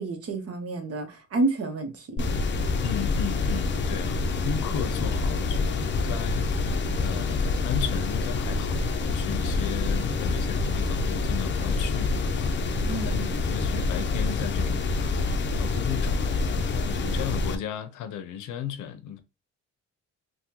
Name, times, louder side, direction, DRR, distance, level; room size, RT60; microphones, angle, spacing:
voice 1, 0.0-2.2 12.8-13.4, right 3 dB, 50° right, 1.0 m, -29 dB
sound 1, 2.2-17.5, left 3 dB, 40° left, 0.5 m, -27 dB
voice 2, 2.8-19.2, left 9 dB, 80° left, 0.6 m, -35 dB
3.4 x 2.2 x 2.9 m
cardioid pair, 90°, 30 cm